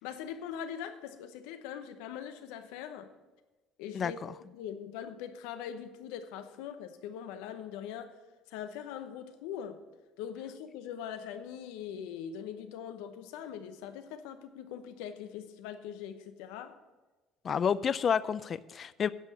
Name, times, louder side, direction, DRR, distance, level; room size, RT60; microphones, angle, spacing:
voice 1, 0.0-3.1 3.8-4.2 4.5-8.2 8.5-9.8 10.2-16.8, left 9 dB, 85° left, 9 dB, 0.8 m, -42 dB
voice 2, 17.4-19.1, left 7 dB, 40° left, 17 dB, 0.4 m, -29 dB
9.8 x 5.6 x 7.5 m, 1.2 s
supercardioid pair, 95°, 0 cm